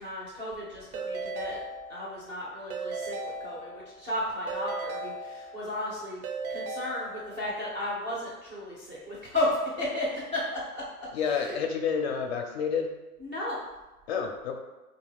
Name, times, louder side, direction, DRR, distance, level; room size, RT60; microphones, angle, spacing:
voice 1, 0.0-1.6 1.9-6.2 6.5-10.8 11.1-11.6 13.2-13.6, left 1 dB, 15° right, -6 dB, 0.3 m, -34 dB
Keyboard (musical) / Ringtone, 0.9-2.3 2.7-4.0 4.5-5.8 6.2-7.6, right 3 dB, 75° right, 0.6 m, -37 dB
voice 2, 11.1-12.9 14.1-14.6, left 6 dB, 45° left, 3 dB, 0.4 m, -29 dB
2.4 x 2.1 x 3.4 m, 1.1 s
hypercardioid pair, 110°, 45 cm